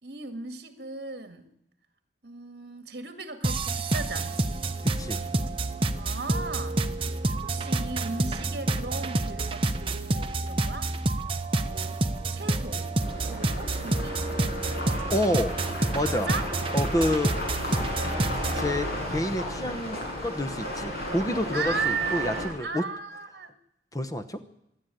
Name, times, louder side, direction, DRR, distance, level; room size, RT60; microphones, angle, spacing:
voice 1, 0.0-1.5 2.2-4.6 5.9-6.8 7.3-10.9 11.6-12.0 12.3-12.9 13.3-14.3 16.1-16.5 21.5-23.5, right 4 dB, 60° right, 8 dB, 2.1 m, -36 dB
sound 1, 3.4-18.7, right 2 dB, 30° right, 1.0 m, -28 dB
voice 2, 4.8-5.2 15.1-15.6 15.9-16.3 16.7-17.3 17.6-17.8 18.5-20.0 20.2-22.8 23.9-24.4, left 1 dB, 20° left, 9 dB, 0.9 m, -28 dB
sound 2, 13.0-22.5, left 1 dB, 55° left, 7.0 m, -34 dB
25.5 x 11.0 x 9.2 m, 0.81 s
head